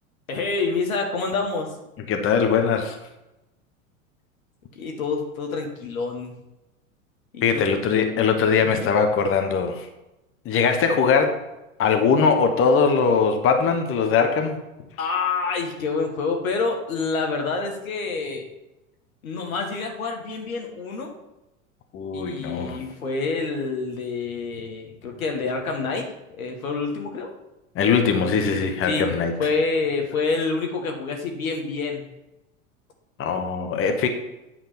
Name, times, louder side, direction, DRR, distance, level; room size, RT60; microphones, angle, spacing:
voice 1, 0.3-1.8 4.7-6.3 7.3-7.7 8.6-8.9 15.0-18.4 19.2-21.2 22.1-27.3 28.9-29.1 29.4-32.1, left 4 dB, 85° left, 2 dB, 1.7 m, -27 dB
voice 2, 2.1-3.0 7.4-9.9 10.4-11.4 11.8-14.6 21.9-22.8 27.7-29.3 33.2-34.1, left 5 dB, 30° left, 5 dB, 1.1 m, -21 dB
8.5 x 3.6 x 6.8 m, 0.96 s
hypercardioid pair, 95°, 40 cm